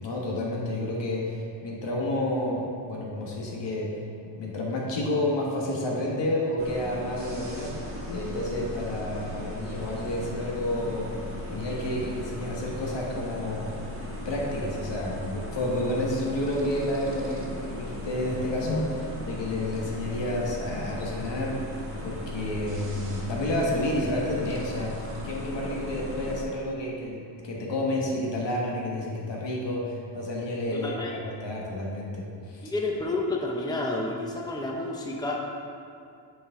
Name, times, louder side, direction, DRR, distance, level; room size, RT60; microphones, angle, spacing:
voice 1, 0.0-3.9 4.3-7.7 8.1-11.1 11.5-13.7 14.2-21.6 22.0-32.7, left 1 dB, 70° left, -3 dB, 1.6 m, -30 dB
sound 1, 6.6-26.4, left 1 dB, 30° right, 1.4 m, -37 dB
voice 2, 30.8-31.2 32.6-35.4, left 2 dB, 10° left, -1 dB, 0.8 m, -30 dB
8.4 x 5.0 x 3.8 m, 2.4 s
cardioid pair, 105°, 44 cm